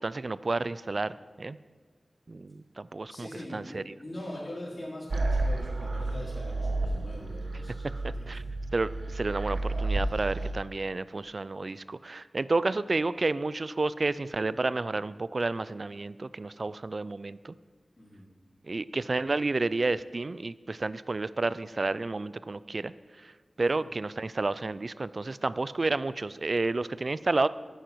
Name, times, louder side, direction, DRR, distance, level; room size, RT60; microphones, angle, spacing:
voice 1, 0.0-1.6 2.3-4.0 8.0-8.4 8.7-17.5 18.6-22.9 23.2-23.3 23.6-27.5, right 3 dB, 50° right, 17 dB, 0.3 m, -31 dB
voice 2, 3.1-8.3 18.0-18.3 23.6-23.9, left 1 dB, 35° left, -8 dB, 4.1 m, -42 dB
sound 1, 5.1-10.5, right 2 dB, 70° right, 1.0 m, -31 dB
12.0 x 9.1 x 4.6 m, 1.5 s
wide cardioid pair, 85°, 0 cm